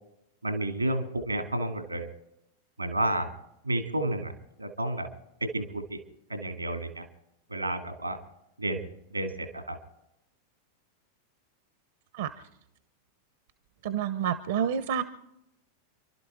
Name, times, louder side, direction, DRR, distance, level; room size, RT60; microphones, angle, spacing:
voice 1, 0.4-2.1 2.8-3.3 3.6-4.3 4.6-5.1 5.4-6.0 6.3-7.0 7.5-8.2 8.6-9.8, right 1 dB, 85° right, 6 dB, 2.3 m, -31 dB
voice 2, 13.8-15.0, right 8 dB, 55° right, 12 dB, 0.9 m, -28 dB
30.0 x 12.5 x 3.5 m, 0.85 s
figure-of-eight pair, 90°, 0 cm